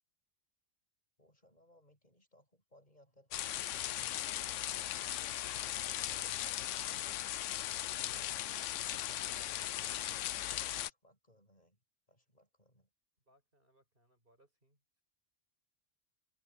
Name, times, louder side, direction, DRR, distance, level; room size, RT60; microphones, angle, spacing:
voice 1, 1.2-4.9 10.4-11.8 12.1-12.9, equal, 35° left, 7.3 m, -66 dB
sound 1, 3.3-10.9, left 13 dB, 85° left, 0.9 m, -38 dB
voice 2, 13.3-15.0, right 1 dB, 50° right, 5.0 m, -71 dB
omnidirectional pair, 1.2 m